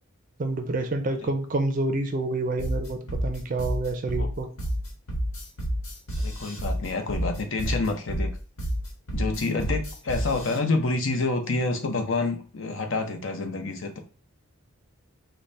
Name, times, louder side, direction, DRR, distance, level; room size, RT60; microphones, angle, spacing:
voice 1, 0.4-4.5, right 2 dB, 40° right, 7 dB, 0.4 m, -28 dB
sound 1, 2.6-10.6, equal, 85° left, 1.1 m, -30 dB
voice 2, 6.2-8.3 9.1-14.0, left 3 dB, 65° left, 5 dB, 0.7 m, -28 dB
4.0 x 2.1 x 3.2 m, 0.39 s
head